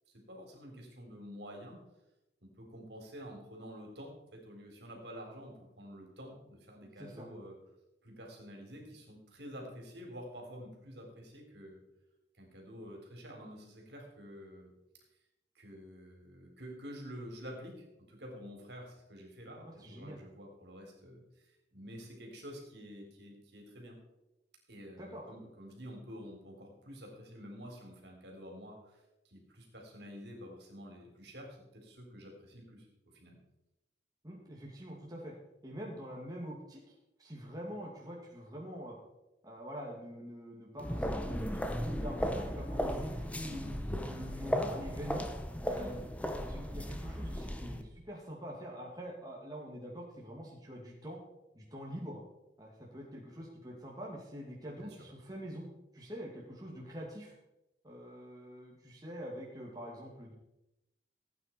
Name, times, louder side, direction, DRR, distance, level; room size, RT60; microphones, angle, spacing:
voice 1, 0.3-1.8 2.6-7.6 8.0-11.8 12.4-14.7 15.6-24.0 24.7-32.9 33.1-33.4 45.8-46.0 54.8-55.0, equal, 65° right, 2 dB, 3.7 m, -49 dB
voice 2, 19.6-20.2 25.0-25.2 34.2-35.3 35.6-36.9 37.2-39.0 39.4-41.4 41.8-43.8 44.1-45.3 45.6-46.1 46.5-51.2 51.5-52.2 52.6-55.6 55.9-57.4 57.8-60.3, equal, 20° right, -3 dB, 2.4 m, -45 dB
sound 1, 40.8-47.8, equal, 5° left, 0.9 m, -36 dB
17.0 x 9.1 x 4.5 m, 0.91 s
head